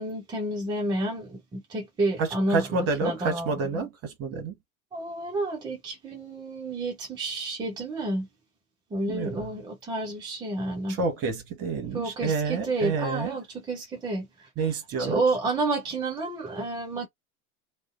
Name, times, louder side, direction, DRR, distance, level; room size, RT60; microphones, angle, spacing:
voice 1, 0.0-3.8 4.9-8.3 8.9-11.0 11.9-14.5 15.0-17.1, right 2 dB, 10° right, 0.4 m, -30 dB
voice 2, 2.2-4.5 9.1-9.5 10.9-13.4 14.6-15.2, right 4 dB, 35° right, 1.0 m, -29 dB
2.5 x 2.1 x 2.4 m
figure-of-eight pair, 85°, 43 cm